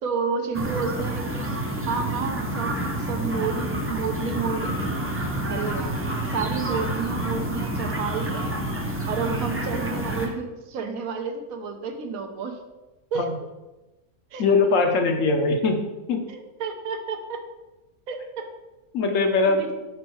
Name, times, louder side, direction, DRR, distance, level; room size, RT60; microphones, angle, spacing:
voice 1, 0.0-1.5 1.8-5.0 5.5-5.9 6.2-8.6 9.1-12.6 13.1-13.3 14.3-14.7 16.3-17.4 18.1-18.4 19.5-19.7, right 5 dB, 80° right, 5 dB, 1.1 m, -30 dB
sound 1, 0.5-10.3, right 1 dB, 20° right, 0.4 m, -28 dB
voice 2, 14.4-15.8 16.1-16.2 18.9-19.7, left 3 dB, 65° left, 4 dB, 1.1 m, -21 dB
5.2 x 4.5 x 4.5 m, 1.1 s
omnidirectional pair, 1.5 m